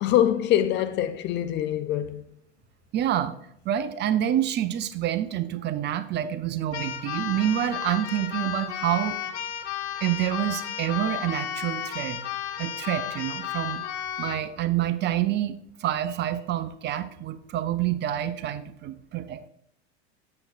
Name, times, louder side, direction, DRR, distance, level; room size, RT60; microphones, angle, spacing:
voice 1, 0.0-2.2, left 11 dB, 35° left, 0.4 m, -24 dB
voice 2, 2.9-3.3 3.7-9.2 10.0-12.2 12.6-13.8 14.2-15.6 15.8-19.5, right 11 dB, 30° right, 0.5 m, -27 dB
Keyboard (musical), 6.7-14.5, left 10 dB, 80° left, 0.7 m, -33 dB
7.8 x 7.2 x 2.4 m
hypercardioid pair, 85°, 33 cm